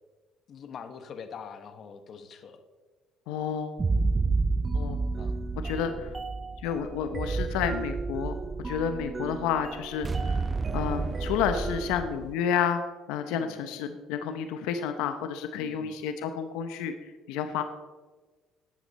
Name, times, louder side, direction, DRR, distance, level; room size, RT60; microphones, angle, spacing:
voice 1, 0.5-2.6 5.2-5.3 13.4-13.6 15.6-16.0, left 6 dB, 50° left, 9 dB, 1.3 m, -44 dB
voice 2, 3.3-3.8 4.7-5.0 5.6-6.1 6.6-8.4 8.6-10.4 10.7-12.8 13.1-16.9 17.3-17.6, left 8 dB, 85° left, 8 dB, 0.8 m, -30 dB
sound 1, 3.8-12.3, right 3 dB, 25° right, 0.6 m, -30 dB
13.0 x 10.5 x 4.2 m, 1.4 s
cardioid pair, 105°, 0 cm